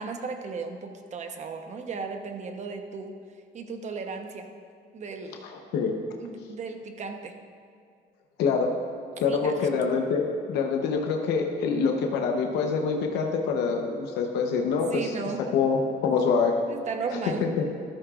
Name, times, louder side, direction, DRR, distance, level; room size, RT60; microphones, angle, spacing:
voice 1, 0.0-3.2 3.5-4.5 4.9-5.4 6.2-7.4 9.3-9.7 14.9-15.5 16.1-16.2 16.7-17.6, right 4 dB, 45° right, 5 dB, 1.0 m, -35 dB
voice 2, 8.4-8.7 9.2-15.1 15.5-16.6 17.1-17.5, left 5 dB, 85° left, 3 dB, 0.9 m, -25 dB
13.5 x 13.0 x 2.5 m, 2.2 s
cardioid pair, 110°, 17 cm